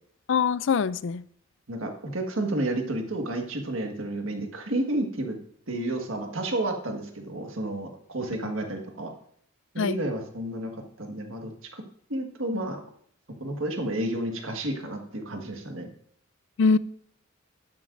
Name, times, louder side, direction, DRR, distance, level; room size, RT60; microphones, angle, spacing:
voice 1, 0.3-1.2 8.4-8.5 9.8-10.0 16.6-16.8, left 5 dB, 60° left, 0.4 m, -23 dB
voice 2, 1.7-5.4 5.7-9.1 9.7-11.8 12.1-12.8 13.4-15.9, right 1 dB, 70° right, 1.6 m, -31 dB
12.0 x 10.5 x 2.6 m
head